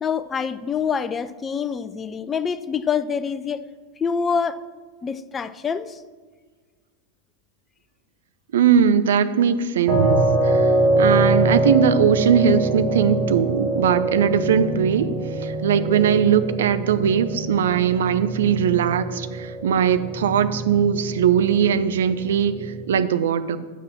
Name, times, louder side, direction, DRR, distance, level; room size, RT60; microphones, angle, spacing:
voice 1, 0.0-3.6 4.0-4.6 5.0-5.9, left 6 dB, 20° left, 13 dB, 0.4 m, -26 dB
voice 2, 8.5-10.2 10.4-15.1 15.4-23.6, right 8 dB, 60° right, 12 dB, 0.5 m, -20 dB
sound 1, 9.9-22.9, right 2 dB, 30° right, 2.2 m, -24 dB
7.5 x 5.4 x 6.0 m, 1.5 s
figure-of-eight pair, 90°, 0 cm